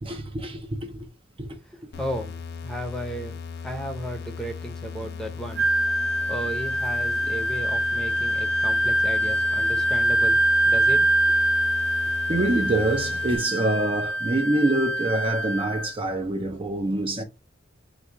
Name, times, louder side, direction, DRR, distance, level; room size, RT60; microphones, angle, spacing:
voice 1, 0.0-1.1 1.4-1.5 6.0-6.1 12.3-17.2, right 2 dB, 30° right, 0.6 m, -25 dB
voice 2, 1.7-5.7 6.0-11.6, right 1 dB, 5° left, 0.8 m, -35 dB
sound 1, 1.9-13.4, left 5 dB, 55° left, 0.4 m, -37 dB
Wind instrument woodwind instrument, 5.6-15.9, right 1 dB, 55° right, 0.8 m, -24 dB
4.1 x 2.3 x 4.6 m
head